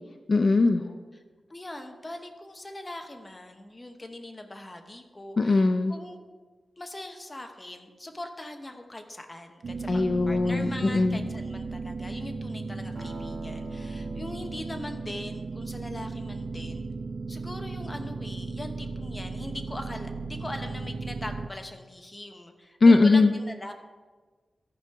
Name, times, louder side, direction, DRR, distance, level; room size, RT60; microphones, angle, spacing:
voice 1, 0.3-0.8 5.4-5.9 9.9-11.2 22.8-23.3, left 3 dB, 50° left, 6 dB, 0.4 m, -20 dB
voice 2, 1.5-6.2 6.8-16.8 17.3-23.7, left 1 dB, 20° left, 5 dB, 1.0 m, -41 dB
sound 1, 9.6-21.5, right 3 dB, 70° right, 0.7 m, -36 dB
sound 2, 13.0-17.2, right 1 dB, 50° right, 1.6 m, -47 dB
13.5 x 5.1 x 4.6 m, 1.4 s
wide cardioid pair, 85°, 0 cm